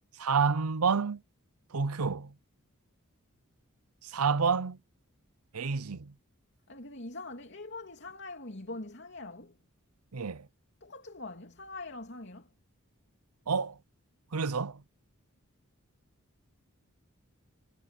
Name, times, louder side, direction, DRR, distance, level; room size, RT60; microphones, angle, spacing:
voice 1, 0.2-1.2 1.7-2.3 4.0-4.8 5.5-6.1 10.1-10.5 13.5-13.8 14.3-14.8, right 5 dB, 90° right, 0.8 m, -29 dB
voice 2, 6.7-9.6 10.8-12.5, left 2 dB, 50° left, 3.0 m, -43 dB
head